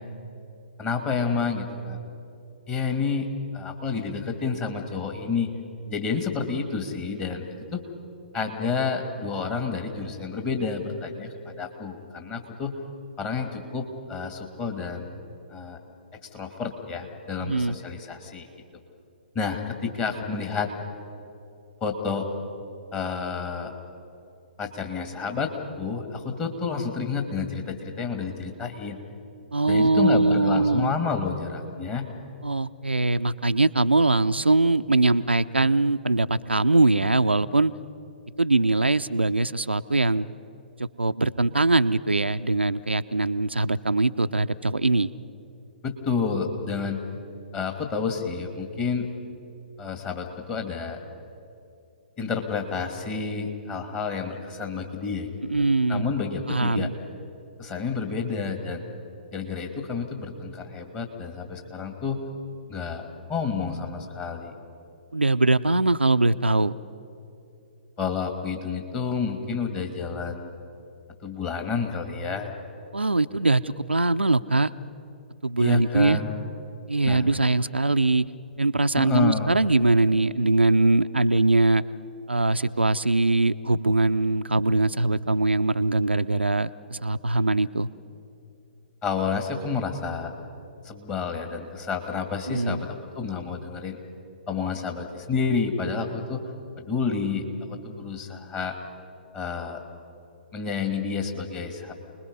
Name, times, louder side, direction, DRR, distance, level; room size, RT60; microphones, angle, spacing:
voice 1, 0.8-2.0 2.7-3.3 3.5-5.5 5.9-7.4 7.7-7.8 8.3-12.7 13.2-15.2 15.5-15.8 16.3-18.5 19.3-20.7 21.8-22.3 22.9-23.7 24.6-29.0 29.7-32.1 45.8-47.0 47.5-49.1 49.8-51.0 52.2-55.3 55.6-56.9 57.6-58.8 59.3-62.2 62.7-63.0 63.3-64.5 68.0-70.5 71.2-72.5 75.6-76.3 77.0-77.3 79.0-79.5 89.0-90.3 90.8-94.0 94.5-96.4 96.8-98.8 99.3-99.8 100.5-101.9, left 5 dB, 20° left, 4 dB, 2.3 m, -29 dB
voice 2, 17.4-17.8 29.5-30.9 32.4-37.7 38.4-40.3 41.0-45.1 55.5-56.1 56.5-56.9 65.1-66.7 72.9-74.7 75.4-76.2 76.9-78.2 78.6-81.8 82.3-87.9 92.5-92.8, right 2 dB, 85° right, 10 dB, 0.5 m, -22 dB
29.0 x 21.0 x 5.5 m, 2.7 s
figure-of-eight pair, 125°, 6 cm